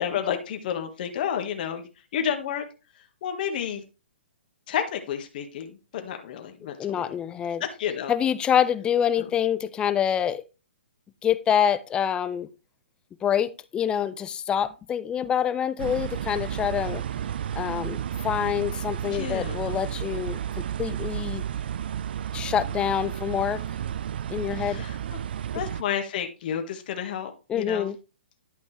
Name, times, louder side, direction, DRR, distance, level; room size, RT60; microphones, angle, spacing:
voice 1, 0.0-2.6 3.2-3.8 4.7-7.1 7.6-8.1 9.2-9.3 19.1-19.7 24.5-25.2 25.5-27.9, left 9 dB, 50° left, 1.6 m, -31 dB
voice 2, 6.8-7.6 8.1-10.4 11.2-12.5 13.2-17.0 17.6-18.0 18.2-20.4 20.8-21.4 22.3-23.6 24.3-24.8 27.5-28.0, left 9 dB, 15° left, 0.5 m, -26 dB
sound 1, 15.8-25.8, right 9 dB, 60° right, 0.4 m, -32 dB
11.5 x 5.3 x 3.3 m
hypercardioid pair, 135°, 6 cm